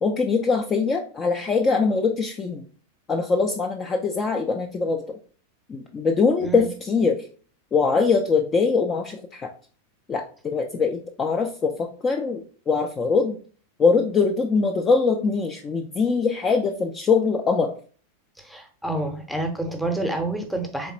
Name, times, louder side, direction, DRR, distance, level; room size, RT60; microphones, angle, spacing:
voice 1, 0.0-2.6 3.1-5.0 5.7-7.2 7.7-9.5 10.1-13.4 13.8-17.7, left 4 dB, 20° left, 3 dB, 0.4 m, -22 dB
voice 2, 18.4-20.9, right 2 dB, ahead, 3 dB, 0.7 m, -28 dB
3.8 x 3.2 x 2.8 m, 0.41 s
figure-of-eight pair, 90°, 0 cm